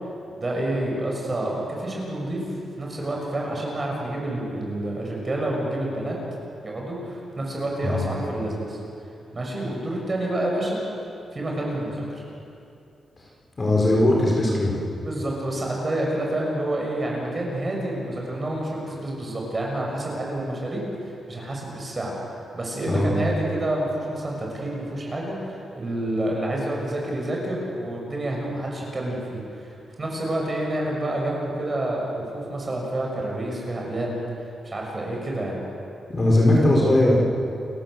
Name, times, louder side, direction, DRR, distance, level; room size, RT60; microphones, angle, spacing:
voice 1, 0.4-2.4 2.8-6.2 6.6-8.8 9.3-10.8 11.3-12.2 15.0-20.9 21.3-22.1 22.5-34.2 34.6-35.6, right 1 dB, 25° right, -2 dB, 6.6 m, -28 dB
voice 2, 13.6-14.7 22.8-23.2 36.1-37.2, left 1 dB, 25° left, -3 dB, 4.9 m, -19 dB
29.5 x 16.0 x 7.8 m, 2.6 s
wide cardioid pair, 140°, 0 cm